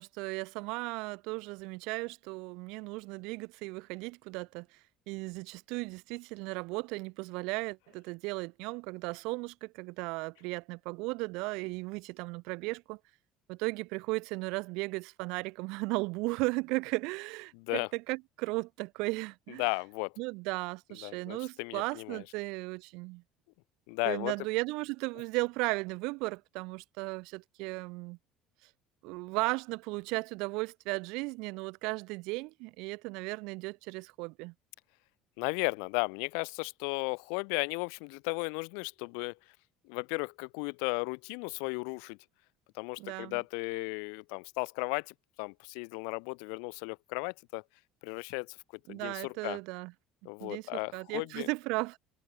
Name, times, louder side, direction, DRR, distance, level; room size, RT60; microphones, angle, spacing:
voice 1, 0.0-4.7 5.1-13.0 13.5-19.6 20.2-23.2 24.0-28.2 29.0-34.5 43.0-43.4 48.9-49.9 50.4-52.0, right 26 dB, 75° right, 2.9 m, -36 dB
voice 2, 17.5-17.9 19.6-20.1 21.0-22.2 23.9-24.3 35.4-39.4 39.8-42.2 42.7-47.6 48.0-48.6 48.9-49.6 50.2-51.5, left 40 dB or more, 90° left, 1.2 m, -35 dB
cardioid pair, 145°, 0 cm